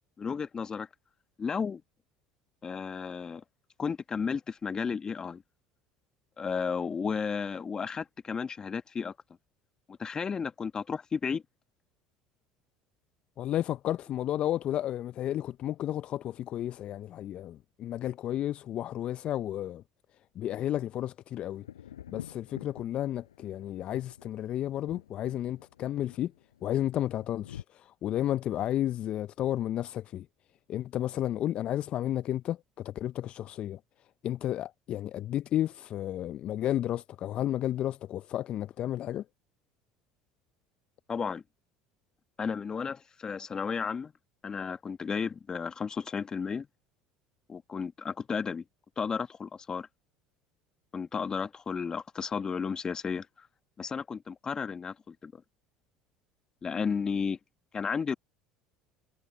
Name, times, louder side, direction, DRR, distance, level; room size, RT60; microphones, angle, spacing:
voice 1, 0.2-0.9 1.4-1.8 2.6-3.4 3.8-5.4 6.4-9.1 9.9-11.4 41.1-41.4 42.4-44.1 44.4-46.7 47.5-48.6 49.0-49.9 50.9-53.5 53.8-55.4 56.6-57.4 57.7-58.1, left 6 dB, 30° left, 1.6 m, -33 dB
voice 2, 13.4-19.8 20.4-21.7 22.1-26.3 26.6-30.3 30.7-33.8 34.2-39.2, left 12 dB, 50° left, 0.5 m, -32 dB
Thunder, 21.5-27.6, left 10 dB, 85° left, 7.6 m, -49 dB
hypercardioid pair, 70°, 2 cm